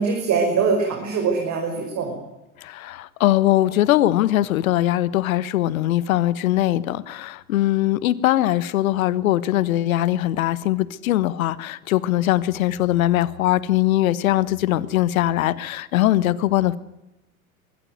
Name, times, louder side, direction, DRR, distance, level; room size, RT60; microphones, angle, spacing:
voice 1, 0.0-2.1, right 5 dB, 40° right, 5.9 m, -22 dB
voice 2, 2.6-16.8, left 14 dB, 65° left, 1.3 m, -21 dB
24.0 x 14.5 x 9.5 m
hypercardioid pair, 90°, 44 cm